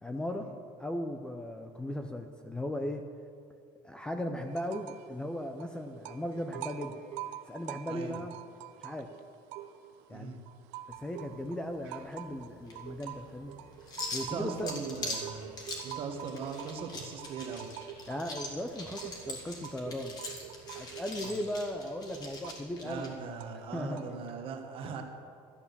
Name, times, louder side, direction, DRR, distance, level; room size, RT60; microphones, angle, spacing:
voice 1, 0.0-0.5 0.8-3.1 3.8-7.0 7.5-8.3 8.8-9.1 10.1-10.3 10.9-13.6 14.1-14.7 18.1-20.2 20.7-23.1 23.5-24.4, left 1 dB, 5° left, 6 dB, 0.4 m, -37 dB
sound 1, 4.5-5.1 5.4-10.1 10.5-24.3, right 12 dB, 85° right, 0.6 m, -46 dB
voice 2, 7.9-8.2 10.1-10.4 14.3-15.5 15.8-17.7 21.2-21.3 22.8-25.0, right 5 dB, 40° right, 5 dB, 1.3 m, -39 dB
sound 2, 10.9-23.1, left 2 dB, 30° left, 1.9 m, -43 dB
12.5 x 8.5 x 6.8 m, 2.4 s
cardioid pair, 170°, 14 cm